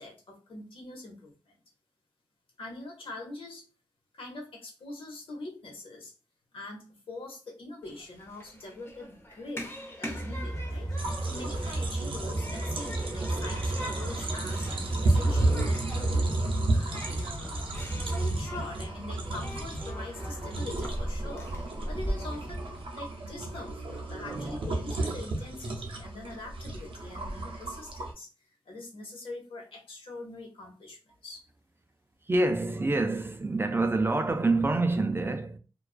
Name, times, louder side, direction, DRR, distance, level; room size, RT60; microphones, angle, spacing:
voice 1, 0.0-1.5 2.6-3.6 4.1-6.1 6.5-9.7 10.0-16.2 16.7-17.7 18.0-21.5 21.9-28.3 28.7-31.5, left 2 dB, 85° left, 0.9 m, -43 dB
Human group actions, 7.8-22.1, equal, 25° left, 0.8 m, -42 dB
sound 1, 10.1-22.9, right 1 dB, 5° left, 1.4 m, -38 dB
sound 2, 11.0-28.1, right 2 dB, 80° right, 0.5 m, -32 dB
voice 2, 32.2-35.6, right 2 dB, 25° right, 0.4 m, -26 dB
2.3 x 2.3 x 2.3 m
cardioid pair, 60°, 9 cm